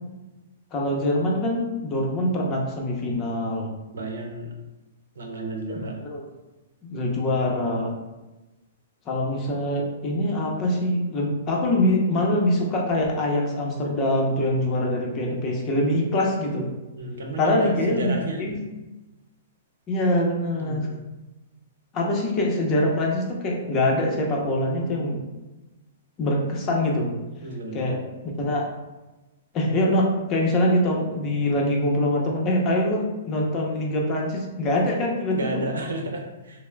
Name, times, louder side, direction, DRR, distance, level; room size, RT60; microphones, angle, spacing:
voice 1, 0.7-3.7 5.7-6.2 6.8-7.9 9.1-16.6 17.4-18.6 19.9-20.9 21.9-25.2 26.2-27.1 27.7-28.0 28.4-28.7 29.5-35.6, left 1 dB, 30° left, -1 dB, 0.7 m, -24 dB
voice 2, 3.9-4.5 5.2-6.0 17.0-18.5 20.6-20.9 27.4-27.9 35.3-36.7, right 1 dB, 90° right, 2 dB, 0.7 m, -32 dB
5.5 x 2.1 x 2.2 m, 1.1 s
hypercardioid pair, 140°, 0 cm